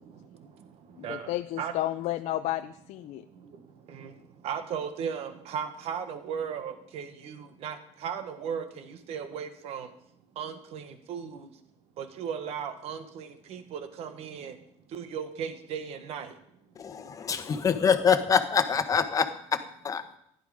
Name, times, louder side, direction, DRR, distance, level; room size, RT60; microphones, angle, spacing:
voice 1, 0.0-1.7 3.2-9.9 10.3-11.5 12.0-14.6 14.9-16.4, right 7 dB, 55° right, 9 dB, 1.4 m, -37 dB
voice 2, 1.0-3.2, left 14 dB, 65° left, 8 dB, 0.5 m, -32 dB
voice 3, 16.8-20.2, left 6 dB, 30° left, 8 dB, 1.1 m, -25 dB
15.0 x 11.0 x 5.0 m, 0.74 s
cardioid pair, 145°, 12 cm